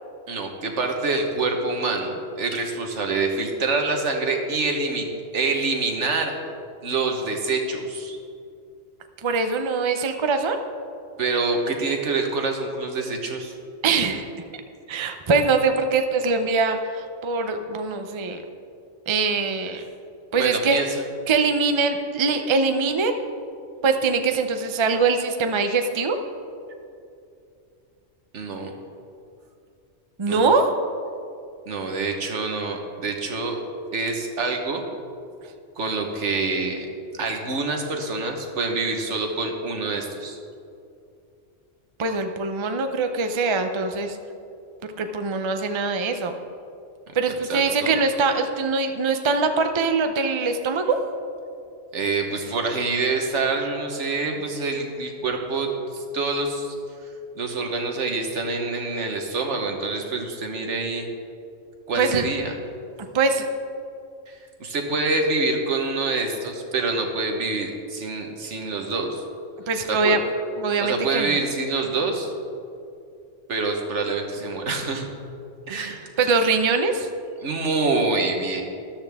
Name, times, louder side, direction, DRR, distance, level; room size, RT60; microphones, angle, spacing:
voice 1, 0.3-5.1 5.3-6.3 6.8-8.2 11.2-13.5 19.8-19.9 20.3-20.9 28.3-28.7 30.3-30.5 31.7-33.6 33.9-34.8 35.8-36.9 37.2-40.4 47.5-48.0 51.9-56.7 57.3-61.1 61.9-62.6 64.3-69.2 69.9-70.2 70.8-72.3 73.5-75.1 75.7-76.0 77.4-78.6, right 3 dB, 80° right, 3 dB, 1.5 m, -26 dB
voice 2, 9.2-10.6 13.8-14.3 14.9-18.4 19.1-19.8 20.3-20.8 21.3-23.2 23.8-26.2 30.2-30.7 42.0-44.2 45.0-46.3 47.1-51.0 61.9-62.3 63.1-63.5 69.7-70.2 70.6-71.3 75.7-77.1, right 4 dB, 30° right, 6 dB, 0.6 m, -23 dB
13.0 x 12.0 x 3.5 m, 2.5 s
omnidirectional pair, 1.2 m